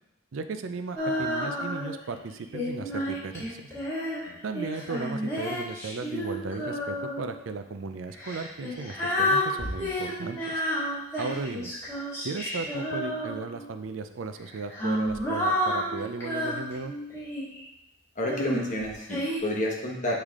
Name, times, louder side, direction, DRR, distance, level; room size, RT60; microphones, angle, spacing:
voice 1, 0.3-3.7 4.4-10.6 11.2-11.7 12.2-16.9, right 4 dB, 75° right, 9 dB, 0.4 m, -36 dB
Female singing, 1.0-2.0 2.5-7.4 8.1-13.7 14.5-17.6 18.3-19.4, left 1 dB, 15° left, 2.2 m, -30 dB
voice 2, 18.1-20.2, left 1 dB, 40° left, -1 dB, 1.2 m, -30 dB
8.2 x 3.3 x 3.6 m, 0.85 s
head